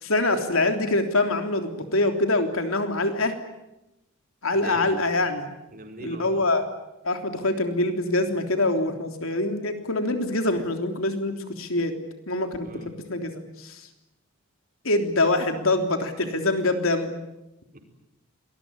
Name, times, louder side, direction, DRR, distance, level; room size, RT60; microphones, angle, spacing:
voice 1, 0.0-3.4 4.4-5.5 6.0-6.6 7.0-11.9 12.3-13.8 14.8-17.1, left 2 dB, 70° left, 6 dB, 3.4 m, -25 dB
voice 2, 4.5-5.0 5.7-6.5 12.6-12.9 17.7-17.8, right 2 dB, 40° right, 3 dB, 4.7 m, -40 dB
26.5 x 20.0 x 9.9 m, 0.92 s
head